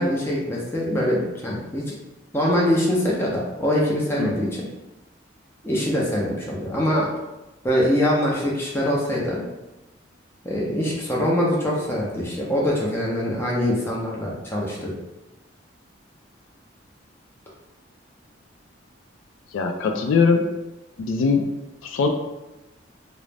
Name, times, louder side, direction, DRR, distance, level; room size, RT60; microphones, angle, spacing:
voice 1, 0.0-2.0 2.3-4.7 5.6-7.1 7.6-9.4 10.4-14.9, equal, 10° left, -4 dB, 0.5 m, -23 dB
voice 2, 19.5-20.4 21.0-21.5 21.8-22.1, left 4 dB, 85° left, 4 dB, 0.3 m, -21 dB
2.4 x 2.0 x 3.2 m, 1.0 s
head